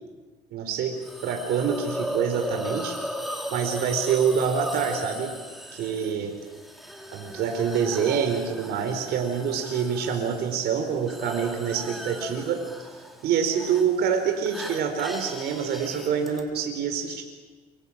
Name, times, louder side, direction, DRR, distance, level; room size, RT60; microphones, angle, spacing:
voice 1, 0.5-0.9 1.2-3.0 3.5-5.3 5.7-6.3 7.1-12.6 13.2-17.2, right 7 dB, 75° right, 4 dB, 4.3 m, -26 dB
Hiss, 1.0-16.4, equal, ahead, 4.5 m, -37 dB
28.5 x 25.5 x 7.4 m, 1.4 s
cardioid pair, 110°, 17 cm